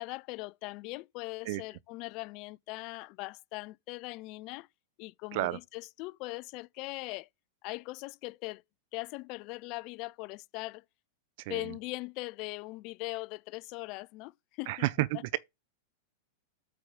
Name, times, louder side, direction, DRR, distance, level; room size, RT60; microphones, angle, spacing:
voice 1, 0.0-4.7 5.0-7.3 7.6-8.6 8.9-10.8 11.5-14.9, left 23 dB, 45° left, 0.4 m, -40 dB
voice 2, 14.7-15.4, right 18 dB, 55° right, 0.5 m, -31 dB
8.4 x 4.6 x 3.7 m
figure-of-eight pair, 95°, 0 cm